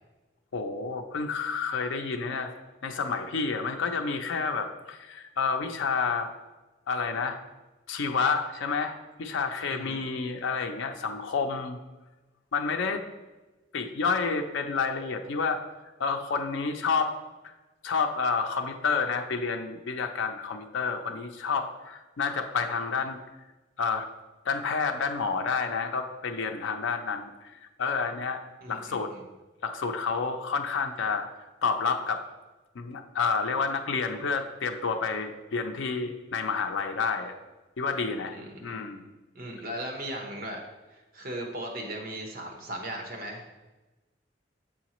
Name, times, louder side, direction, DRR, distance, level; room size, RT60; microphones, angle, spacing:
voice 1, 0.5-2.5 2.8-6.3 6.9-7.4 7.9-8.9 9.2-11.8 12.5-13.1 13.7-15.6 16.0-17.2 17.4-17.5 17.8-23.2 23.8-24.1 24.5-28.4 28.7-29.1 29.6-31.3 31.6-32.2 32.8-37.3 37.8-39.1, left 5 dB, 90° left, 5 dB, 0.5 m, -29 dB
voice 2, 9.7-10.0 28.6-29.2 38.3-38.8 39.3-40.6 40.9-43.5, right 1 dB, 50° right, 1 dB, 1.0 m, -38 dB
7.0 x 4.9 x 3.0 m, 1.1 s
head